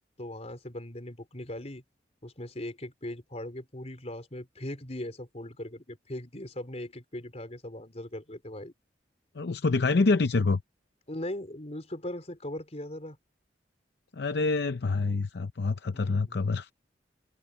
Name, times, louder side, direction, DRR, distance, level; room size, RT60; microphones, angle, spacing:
voice 1, 0.2-1.8 2.2-8.7 11.1-13.2 15.9-16.4, left 1 dB, 35° left, 4.0 m, -39 dB
voice 2, 9.3-10.6 14.1-16.7, left 3 dB, 65° left, 0.6 m, -26 dB
head